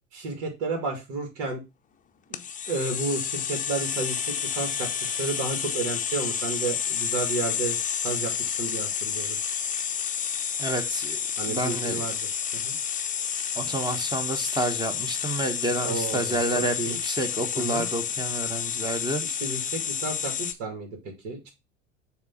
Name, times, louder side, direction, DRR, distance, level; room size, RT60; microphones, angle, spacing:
voice 1, 0.1-1.6 2.3-2.4 2.7-7.8 8.0-9.4 11.4-12.8 15.8-17.0 17.5-17.8 19.2-21.5, right 3 dB, 60° right, 2.2 m, -32 dB
sound 1, 2.3-20.5, left 8 dB, 20° left, 0.7 m, -30 dB
voice 2, 10.6-11.2 11.5-12.1 13.5-19.2, right 1 dB, 10° right, 1.2 m, -29 dB
7.3 x 3.0 x 5.8 m
hypercardioid pair, 80°, 37 cm